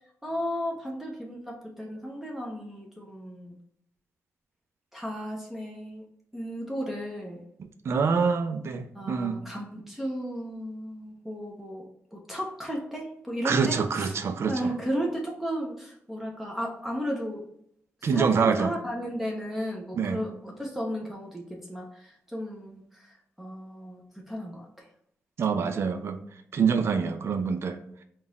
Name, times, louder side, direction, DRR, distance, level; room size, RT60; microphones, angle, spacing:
voice 1, 0.2-3.6 4.9-6.0 6.3-7.4 8.9-14.1 14.5-17.4 18.0-23.1 23.4-24.7, equal, 5° right, -2 dB, 0.7 m, -34 dB
voice 2, 7.8-9.4 13.4-14.7 18.0-18.7 19.9-20.2 25.4-26.2 26.5-27.8, right 5 dB, 60° right, 8 dB, 0.5 m, -25 dB
3.8 x 2.4 x 3.8 m, 0.69 s
wide cardioid pair, 115°, 5 cm